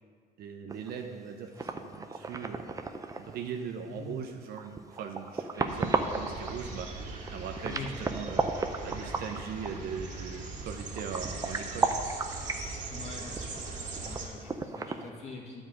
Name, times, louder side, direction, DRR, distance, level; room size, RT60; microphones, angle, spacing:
voice 1, 0.4-2.6 3.2-8.5 8.8-11.9, right 6 dB, 65° right, 4 dB, 0.8 m, -40 dB
sound 1, 0.7-1.1 1.5-3.5 4.2-6.6 7.2-10.0 10.2-10.3 10.6-12.7 13.3-15.1, right 3 dB, 20° right, 0.6 m, -34 dB
sound 2, 5.7-14.3, right 3 dB, 45° right, 2.1 m, -40 dB
voice 2, 12.9-13.6 14.0-15.6, left 3 dB, 40° left, -2 dB, 2.1 m, -43 dB
9.9 x 4.9 x 7.7 m, 2.1 s
cardioid pair, 110°, 17 cm